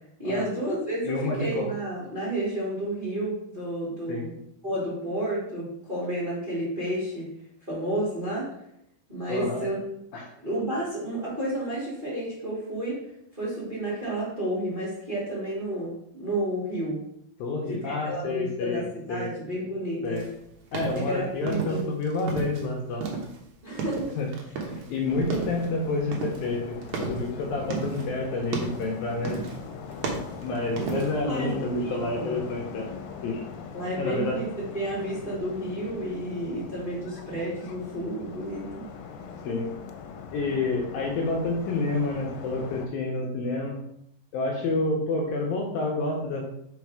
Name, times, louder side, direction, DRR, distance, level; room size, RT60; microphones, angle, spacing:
voice 1, 0.2-4.3 4.6-7.3 7.7-8.5 9.1-9.8 10.4-13.0 13.3-17.0 17.7-20.2 20.9-21.8 23.6-24.1 25.1-25.4 30.8-32.4 33.7-38.9, right 1 dB, 15° right, -8 dB, 1.8 m, -31 dB
voice 2, 1.0-1.7 4.1-4.3 9.3-9.6 10.1-10.3 17.4-19.3 20.0-20.3 20.7-23.1 24.2-24.3 24.7-29.5 30.4-32.9 33.2-33.4 34.0-34.4 39.4-39.7 40.3-43.7 44.3-46.5, left 3 dB, 75° left, 0 dB, 2.5 m, -29 dB
sound 1, 20.1-22.7 22.9-25.0 25.2-25.7 26.1-28.1 28.4-28.9 29.2-29.7 29.9-31.2, right 4 dB, 65° right, 2.0 m, -33 dB
sound 2, 25.1-42.9, left 5 dB, 90° left, 2.6 m, -41 dB
5.3 x 5.1 x 4.8 m, 0.76 s
omnidirectional pair, 4.5 m